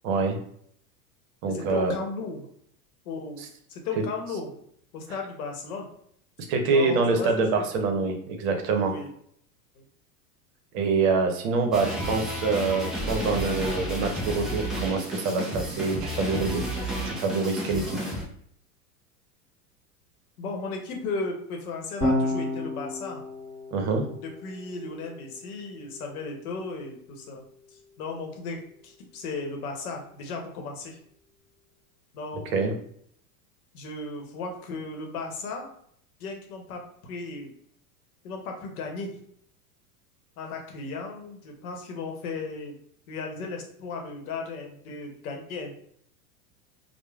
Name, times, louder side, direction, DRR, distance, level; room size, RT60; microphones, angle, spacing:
voice 1, 0.0-0.4 1.4-1.9 6.5-8.9 10.7-18.0 23.7-24.0 32.5-32.8, right 4 dB, 60° right, 4 dB, 0.8 m, -25 dB
voice 2, 1.5-2.5 3.0-4.5 4.9-5.9 6.7-7.7 8.9-9.1 9.7-9.8 20.4-23.2 24.4-31.0 32.1-32.6 33.7-35.7 36.2-37.5 38.2-39.2 40.4-42.7 43.1-45.7, left 3 dB, 70° left, 2 dB, 0.9 m, -35 dB
sound 1, 11.7-18.2, equal, ahead, 0.4 m, -31 dB
Electric guitar / Bass guitar, 22.0-28.4, left 2 dB, 20° left, 1.4 m, -33 dB
3.1 x 2.1 x 2.3 m, 0.66 s
hypercardioid pair, 100°, 45 cm